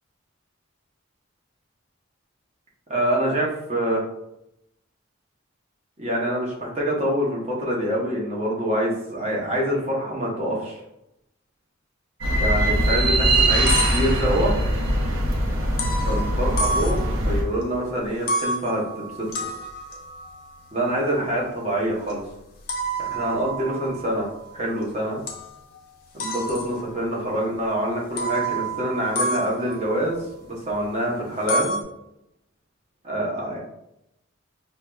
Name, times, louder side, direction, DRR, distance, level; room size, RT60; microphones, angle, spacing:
voice 1, 2.9-4.0 6.0-10.8 12.4-14.5 16.1-18.8 19.2-19.3 20.7-22.2 23.0-25.2 26.1-30.2 30.4-31.8 33.0-33.6, equal, 30° right, -3 dB, 0.8 m, -25 dB
sound 1, 12.2-17.4, right 1 dB, 75° right, 0.6 m, -21 dB
sound 2, 13.3-14.6 15.8-17.6 18.0-24.8 25.3-25.8 26.2-27.2 27.6-27.7 28.2-30.9 31.2-31.8, right 1 dB, 45° left, 0.5 m, -30 dB
4.5 x 2.2 x 2.3 m, 0.84 s
head